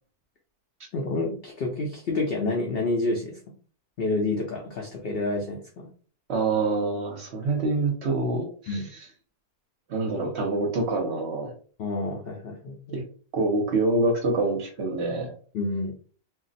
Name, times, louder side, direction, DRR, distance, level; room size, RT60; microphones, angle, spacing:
voice 1, 0.9-3.4 4.0-5.9 8.7-8.9 11.8-13.0 15.5-15.9, left 2 dB, 75° left, 1 dB, 0.5 m, -29 dB
voice 2, 6.3-8.8 9.9-11.5 12.9-13.0 13.3-15.3, right 2 dB, 55° right, 2 dB, 0.8 m, -26 dB
2.5 x 2.0 x 3.9 m, 0.42 s
omnidirectional pair, 1.6 m